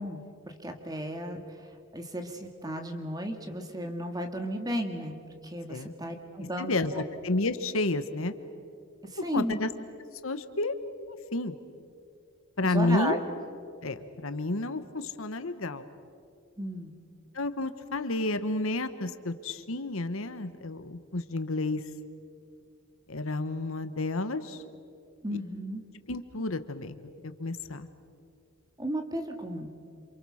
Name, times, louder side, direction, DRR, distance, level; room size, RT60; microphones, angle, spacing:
voice 1, 0.0-1.4 1.9-5.2 5.4-7.0 9.1-9.6 12.6-13.2 16.6-16.9 25.2-25.8 28.8-29.8, equal, 20° right, 5 dB, 2.0 m, -34 dB
voice 2, 6.6-8.3 9.2-9.7 10.2-10.7 11.1-11.6 12.6-13.2 13.8-15.8 17.3-21.8 23.1-24.6 25.3-25.4 26.1-27.0 27.2-27.9, left 2 dB, 75° left, 10 dB, 1.3 m, -31 dB
28.0 x 27.5 x 6.4 m, 2.5 s
head